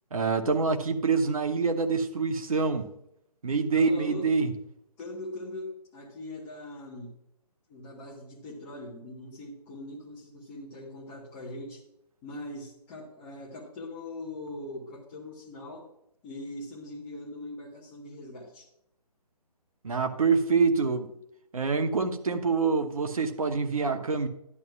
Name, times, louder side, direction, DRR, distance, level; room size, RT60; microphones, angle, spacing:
voice 1, 0.1-2.9 3.4-4.5 19.8-21.1 21.5-24.3, right 4 dB, 60° right, 1.0 m, -26 dB
voice 2, 3.7-4.3 5.0-7.1 7.7-11.8 12.2-15.8 16.2-18.7, left 2 dB, 20° left, 1.2 m, -41 dB
11.0 x 11.0 x 2.4 m
figure-of-eight pair, 145°, 21 cm